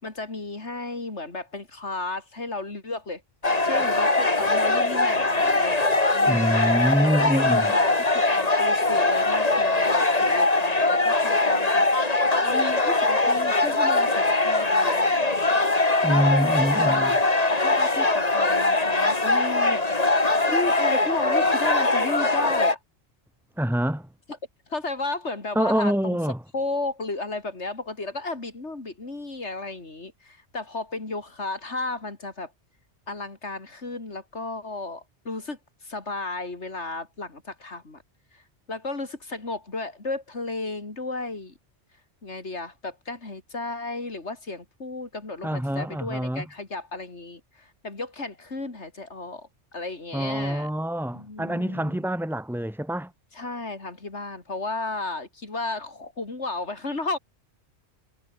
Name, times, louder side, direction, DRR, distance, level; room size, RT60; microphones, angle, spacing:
voice 1, 0.0-3.2 3.6-5.8 6.1-6.5 7.0-15.4 16.1-17.1 17.5-19.8 20.5-22.8 24.7-26.2 26.5-32.5 33.1-38.0 38.3-38.4 38.7-41.5 42.2-50.7 51.1-52.0 53.3-57.2, left 3 dB, 75° left, 4.0 m, -33 dB
sound 1, 3.4-22.8, left 2 dB, 35° left, 2.4 m, -22 dB
voice 2, 6.3-7.7 16.0-17.1 23.6-24.1 25.5-26.4 45.4-46.4 50.1-53.1, equal, ahead, 1.3 m, -25 dB
omnidirectional pair, 1.2 m